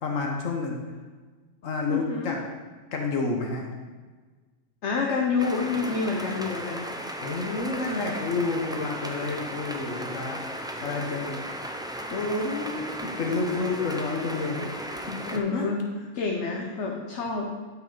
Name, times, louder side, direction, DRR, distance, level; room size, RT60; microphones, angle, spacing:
voice 1, 0.0-0.8 1.6-2.4 2.9-3.7 7.2-10.4 10.8-11.4 12.1-14.7 15.1-15.2 15.5-15.7 16.5-16.7, left 3 dB, 85° left, 1 dB, 1.5 m, -29 dB
voice 2, 1.9-2.4 4.8-6.9 15.2-15.8 16.1-17.5, left 4 dB, 65° left, 0 dB, 1.2 m, -28 dB
sound 1, 5.4-15.4, right 1 dB, 5° right, 0.3 m, -36 dB
12.5 x 6.0 x 3.9 m, 1.4 s
omnidirectional pair, 1.3 m